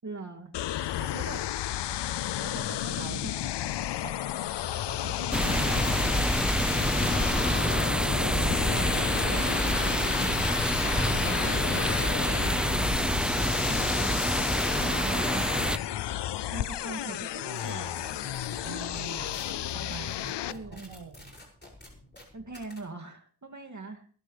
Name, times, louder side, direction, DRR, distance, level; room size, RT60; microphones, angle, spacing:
voice 1, 0.0-0.5 1.1-1.4 2.5-3.3 7.5-7.9 8.2-14.5 14.9-15.8 16.4-18.0 20.5-20.9 22.3-24.1, right 3 dB, 45° right, 4 dB, 2.4 m, -42 dB
sound 1, 0.5-20.5, left 12 dB, 80° left, 0.5 m, -32 dB
voice 2, 0.9-1.5 2.4-3.3 4.0-4.1 4.6-5.9 18.6-19.4 19.7-21.4, right 6 dB, 90° right, 6 dB, 2.1 m, -45 dB
sound 2, 5.3-15.8, equal, ahead, 0.9 m, -27 dB
sound 3, 17.5-22.8, left 1 dB, 25° left, 6.4 m, -47 dB
22.0 x 12.0 x 3.3 m, 0.44 s
cardioid pair, 55°, 41 cm